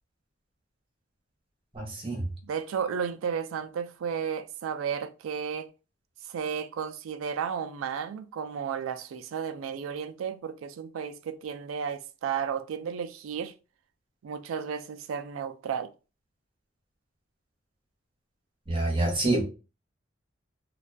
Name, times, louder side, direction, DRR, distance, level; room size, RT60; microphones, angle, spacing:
voice 1, 1.7-2.2 18.7-19.4, right 2 dB, 25° right, 0.8 m, -27 dB
voice 2, 2.5-5.7 6.3-13.5 14.2-15.9, right 7 dB, 85° right, 0.3 m, -33 dB
2.3 x 2.2 x 2.4 m
head